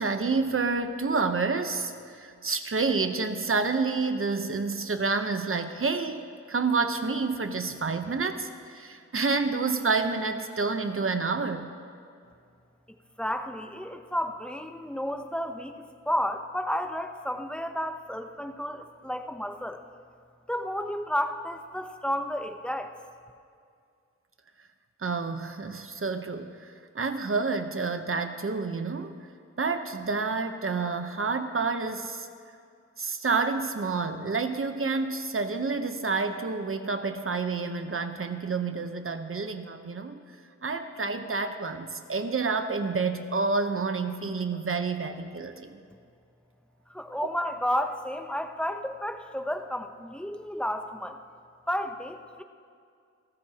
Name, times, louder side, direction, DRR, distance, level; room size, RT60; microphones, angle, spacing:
voice 1, 0.0-6.2 6.5-11.7 25.0-29.2 29.6-32.3 33.0-40.2 40.6-45.8, right 4 dB, 45° right, 7 dB, 0.9 m, -29 dB
voice 2, 12.9-15.7 16.1-19.8 20.5-23.0 46.9-51.2 51.7-52.4, equal, 5° left, 6 dB, 0.8 m, -32 dB
28.0 x 13.5 x 2.9 m, 2.3 s
wide cardioid pair, 100°, 29 cm